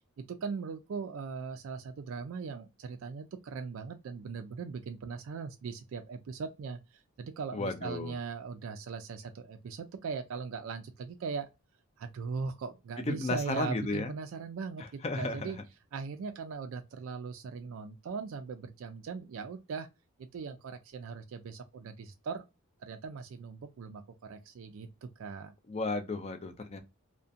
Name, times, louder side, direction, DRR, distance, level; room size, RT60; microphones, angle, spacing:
voice 1, 0.2-11.5 12.0-15.6 15.9-19.9 20.2-22.4 22.8-25.5, right 5 dB, 65° right, 0.3 m, -39 dB
voice 2, 7.5-8.1 13.1-14.1 14.8-15.5 25.7-26.8, left 2 dB, 30° left, 0.4 m, -34 dB
2.4 x 2.1 x 2.5 m
head